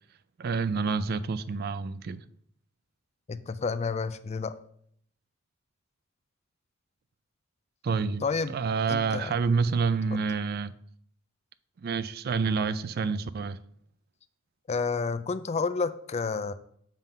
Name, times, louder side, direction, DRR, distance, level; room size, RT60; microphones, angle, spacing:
voice 1, 0.4-2.2 7.8-8.2 8.5-10.7 11.8-13.6, right 5 dB, 50° right, 0.4 m, -28 dB
voice 2, 3.3-4.5 8.2-8.6 8.9-9.3 14.7-16.5, left 4 dB, 30° left, 0.4 m, -30 dB
7.4 x 3.7 x 5.3 m
head